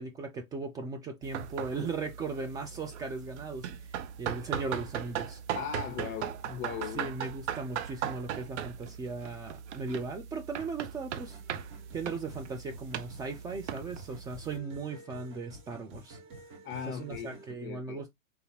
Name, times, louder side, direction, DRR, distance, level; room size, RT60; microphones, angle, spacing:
voice 1, 0.0-3.7 4.2-5.4 6.9-11.4 11.9-16.2 16.9-18.1, right 4 dB, 10° right, 0.3 m, -37 dB
sound 1, 1.2-14.6, right 9 dB, 55° right, 0.8 m, -39 dB
voice 2, 5.5-7.1 16.6-18.0, left 8 dB, 30° left, 0.9 m, -38 dB
sound 2, 11.1-17.5, right 2 dB, 30° right, 2.2 m, -50 dB
4.0 x 4.0 x 2.8 m
hypercardioid pair, 110°, 41 cm